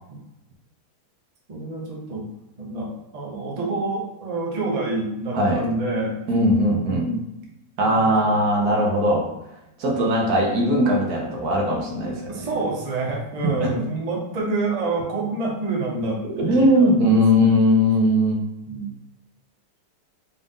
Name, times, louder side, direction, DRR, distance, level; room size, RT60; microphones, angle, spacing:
voice 1, 1.5-2.3 2.6-6.2 6.7-7.3 7.8-8.3 8.6-8.9 9.9-10.0 12.0-17.5 18.7-18.9, right 2 dB, 40° right, -2 dB, 0.6 m, -28 dB
voice 2, 5.3-5.6 6.3-7.1 7.8-9.3 9.8-12.5 13.6-13.8 16.4-18.4, equal, 65° right, 0 dB, 1.3 m, -19 dB
4.0 x 2.5 x 3.5 m, 0.90 s
omnidirectional pair, 1.8 m